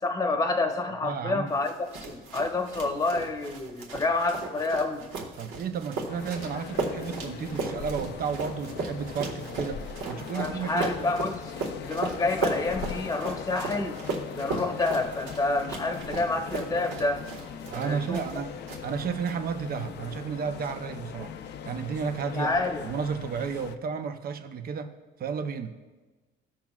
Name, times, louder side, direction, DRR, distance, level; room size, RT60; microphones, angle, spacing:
voice 1, 0.0-1.7 2.0-5.1 10.3-14.0 14.3-17.2 17.7-18.3 22.3-22.8, left 2 dB, 15° left, 4 dB, 0.9 m, -28 dB
voice 2, 1.0-1.5 5.4-11.1 17.7-21.3 21.6-22.5 22.8-24.9 25.2-25.8, right 6 dB, 45° right, 8 dB, 0.7 m, -32 dB
sound 1, 1.6-18.4 18.7-19.3, right 3 dB, 75° right, 1.7 m, -36 dB
sound 2, 6.1-23.8, left 8 dB, 55° left, 0.5 m, -40 dB
15.5 x 5.9 x 2.4 m, 1.3 s
cardioid pair, 120°, 21 cm